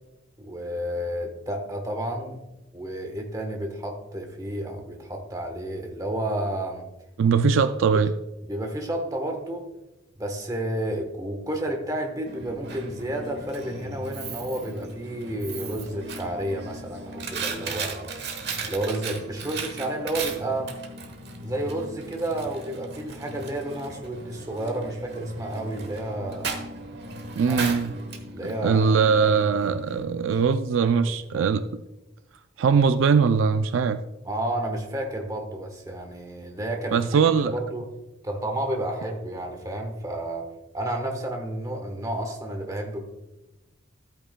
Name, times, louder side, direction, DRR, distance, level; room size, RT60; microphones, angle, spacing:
voice 1, 0.4-2.4 2.7-6.9 8.5-9.7 10.2-18.1 18.6-20.7 21.4-26.6 27.5-27.7 28.3-29.0 30.3-30.4 30.8-31.5 34.3-37.9 38.2-40.5 40.7-43.0, right 1 dB, 15° right, 3 dB, 1.1 m, -31 dB
voice 2, 7.2-8.1 27.4-27.9 28.4-31.7 32.6-34.0 36.9-37.5, right 5 dB, 70° right, 11 dB, 0.3 m, -21 dB
Coin (dropping), 12.3-30.0, right 3 dB, 50° right, 1.2 m, -37 dB
14.0 x 8.9 x 2.2 m, 1.0 s
head